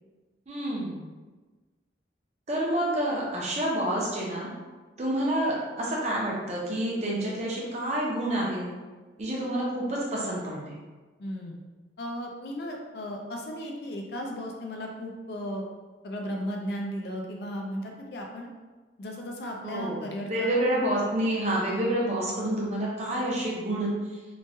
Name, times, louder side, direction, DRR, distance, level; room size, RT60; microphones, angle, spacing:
voice 1, 0.5-1.0 2.5-4.5 5.0-8.7 9.2-10.8 19.6-23.9, right 1 dB, 40° right, -4 dB, 0.7 m, -28 dB
voice 2, 11.2-11.6 12.0-15.6 16.0-18.5 19.0-20.6, equal, 65° left, 1 dB, 0.4 m, -35 dB
3.0 x 2.2 x 2.7 m, 1.3 s
head